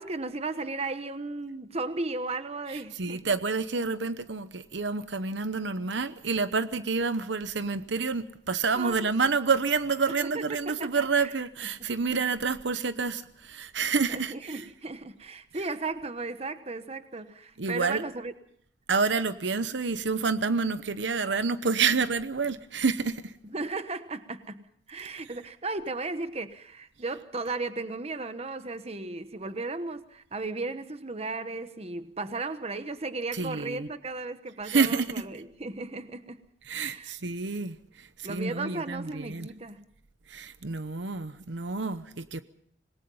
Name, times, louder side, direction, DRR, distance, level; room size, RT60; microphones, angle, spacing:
voice 1, 0.0-3.2 8.7-9.1 10.3-10.9 11.2-11.3 14.1-18.3 23.5-36.4 36.7-37.1 38.2-39.8, right 3 dB, 35° right, 1.1 m, -35 dB
voice 2, 2.7-14.7 17.6-18.0 18.9-23.3 33.3-33.9 34.6-35.1 36.7-39.5 40.3-42.4, right 4 dB, 70° right, 0.9 m, -28 dB
26.5 x 20.0 x 5.5 m
head